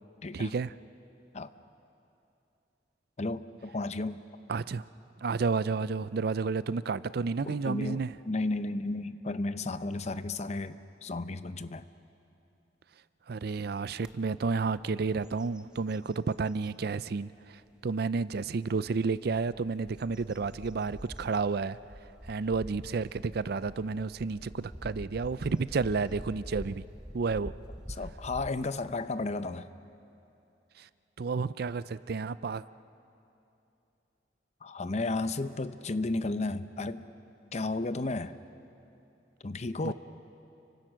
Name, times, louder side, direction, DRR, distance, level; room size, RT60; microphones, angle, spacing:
voice 1, 0.3-0.7 4.5-4.8 5.2-8.2 13.3-21.8 22.2-26.8 27.1-27.5 30.8-30.9 31.2-32.6 39.8-39.9, right 4 dB, 60° right, 17 dB, 0.5 m, -31 dB
voice 2, 3.2-4.2 7.5-8.0 8.3-11.9 28.0-29.7 34.6-37.0 37.5-38.4 39.4-39.9, left 2 dB, 40° left, 12 dB, 0.7 m, -33 dB
sound 1, 14.0-14.1 14.6-14.9 15.2-16.7 17.3-17.4 19.1-28.5, equal, 5° right, 0.7 m, -46 dB
29.5 x 24.0 x 6.4 m, 2.8 s
head